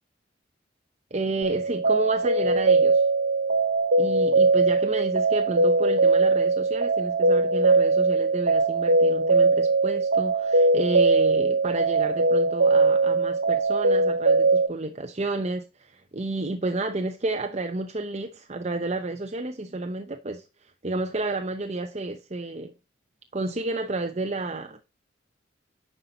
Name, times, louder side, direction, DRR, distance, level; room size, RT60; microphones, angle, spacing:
voice 1, 1.1-3.0 4.0-22.7 23.3-24.8, right 2 dB, 35° right, 0.8 m, -31 dB
sound 1, 1.4-14.7, right 3 dB, 90° right, 1.7 m, -21 dB
10.0 x 5.8 x 3.9 m
head